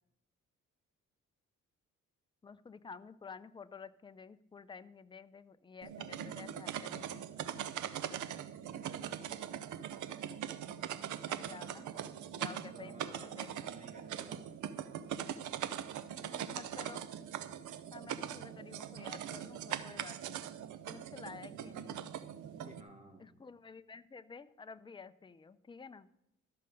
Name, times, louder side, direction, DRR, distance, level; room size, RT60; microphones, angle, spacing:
voice 1, 2.4-7.5 11.3-11.9 12.3-13.7 16.1-17.0 17.9-20.4 20.9-22.1 23.2-26.1, left 5 dB, 15° left, 12 dB, 0.5 m, -51 dB
sound 1, 5.8-22.8, right 10 dB, 75° right, 0.7 m, -41 dB
voice 2, 8.7-9.6 12.6-13.3 13.7-15.2 21.5-22.2 22.4-23.3, right 2 dB, 25° right, 2 dB, 2.2 m, -55 dB
13.0 x 6.6 x 5.3 m, 0.79 s
cardioid pair, 90°, 30 cm